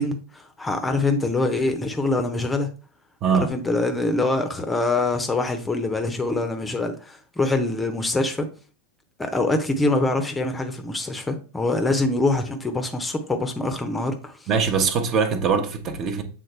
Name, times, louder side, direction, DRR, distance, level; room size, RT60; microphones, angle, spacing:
voice 1, 0.0-2.7 3.3-8.5 9.2-14.5, left 2 dB, 10° left, 0.8 m, -24 dB
voice 2, 3.2-3.5 14.5-16.2, right 5 dB, 30° right, 1.0 m, -22 dB
7.8 x 3.8 x 3.3 m
figure-of-eight pair, 90°, 0 cm